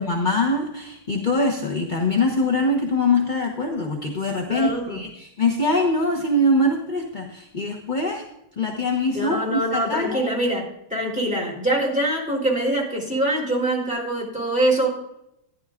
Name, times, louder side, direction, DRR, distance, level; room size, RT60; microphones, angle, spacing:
voice 1, 0.0-8.2 8.6-10.2, left 2 dB, 35° left, -1 dB, 0.7 m, -23 dB
voice 2, 4.5-5.0 9.1-10.6 10.9-14.9, right 1 dB, 5° right, -4 dB, 3.3 m, -24 dB
15.0 x 10.5 x 2.5 m, 0.83 s
omnidirectional pair, 2.4 m